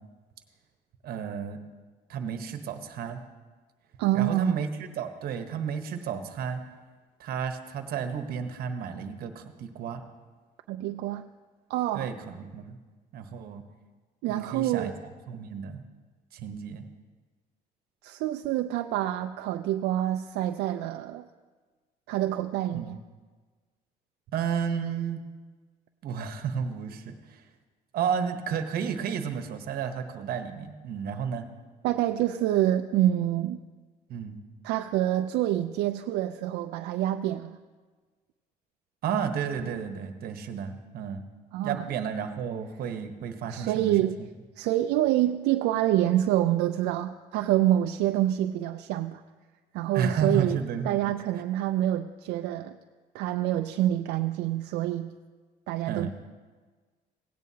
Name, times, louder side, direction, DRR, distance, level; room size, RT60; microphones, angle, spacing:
voice 1, 1.0-1.6 2.1-3.2 4.1-6.6 7.2-10.0 11.9-12.8 13.1-13.6 14.3-14.9 15.3-15.8 16.3-16.8 22.7-23.0 24.3-25.2 26.0-27.4 27.9-31.5 34.1-34.4 39.0-41.2 41.6-44.3 49.9-51.4 55.9-56.1, right 7 dB, 65° right, 7 dB, 1.0 m, -32 dB
voice 2, 4.0-4.6 10.7-11.3 11.7-12.1 14.2-14.9 18.0-21.3 22.1-23.0 31.8-33.6 34.6-37.6 41.5-41.8 43.5-44.2 44.6-49.2 49.7-50.6 50.8-52.8 53.1-55.1 55.7-56.1, right 13 dB, 85° right, 6 dB, 0.4 m, -27 dB
17.0 x 9.2 x 2.8 m, 1.4 s
cardioid pair, 110°, 17 cm